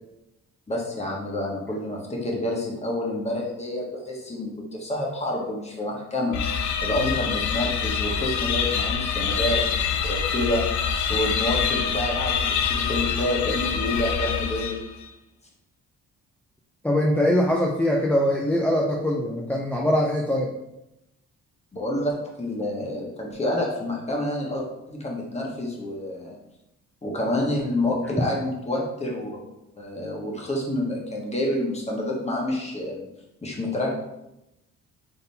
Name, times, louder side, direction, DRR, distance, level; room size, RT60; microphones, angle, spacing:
voice 1, 0.7-6.4 6.8-10.6 11.1-14.8 21.7-26.4 27.0-29.4 29.8-33.1 33.4-33.9, left 1 dB, 20° left, -2 dB, 1.2 m, -28 dB
sound 1, 6.3-15.0, left 7 dB, 70° left, 0.5 m, -26 dB
voice 2, 16.8-20.5, left 1 dB, 5° left, -2 dB, 0.4 m, -22 dB
3.9 x 3.7 x 2.7 m, 0.88 s
cardioid pair, 90°, 30 cm